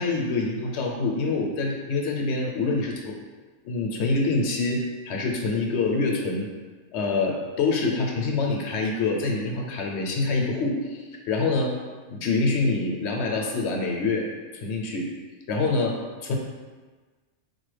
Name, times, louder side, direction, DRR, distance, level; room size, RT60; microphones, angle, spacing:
voice 1, 0.0-3.2 3.6-6.5 6.9-11.7 12.1-14.3 14.6-15.1 15.5-16.0 16.2-16.4, left 3 dB, 75° left, 0 dB, 0.9 m, -26 dB
4.2 x 2.1 x 3.2 m, 1.3 s
omnidirectional pair, 1.2 m